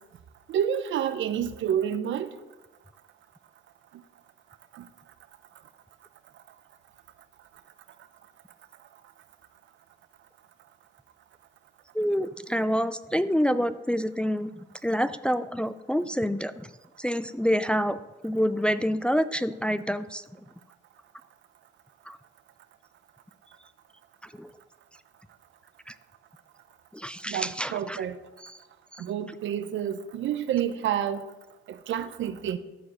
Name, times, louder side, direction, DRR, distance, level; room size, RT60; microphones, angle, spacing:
voice 1, 0.5-2.3 4.8-4.9 27.3-28.2 29.0-31.2 31.9-32.6, right 9 dB, 70° right, 0.7 m, -29 dB
voice 2, 11.9-14.5 14.8-16.5 17.0-20.2 22.1-22.2 24.2-24.5 25.9-26.0 26.9-28.0 28.4-28.6 28.9-29.0, equal, 5° left, 0.4 m, -27 dB
13.5 x 4.9 x 6.3 m
cardioid pair, 90°, 20 cm